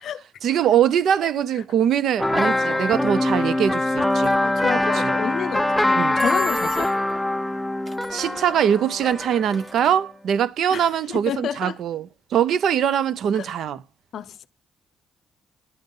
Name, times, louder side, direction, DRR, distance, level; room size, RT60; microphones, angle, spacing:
voice 1, 0.4-4.4 4.9-5.1 6.0-6.2 8.1-13.8, right 9 dB, 70° right, 0.4 m, -22 dB
sound 1, 2.2-9.9, left 1 dB, 5° left, 0.4 m, -23 dB
sound 2, 4.1-4.3 6.2-7.1 7.9-8.2 8.7-10.0, right 1 dB, 25° right, 1.4 m, -41 dB
voice 2, 4.4-6.9 10.7-11.8 13.3-13.5 14.1-14.5, left 9 dB, 65° left, 0.5 m, -30 dB
10.5 x 5.3 x 3.8 m
cardioid pair, 90°, 0 cm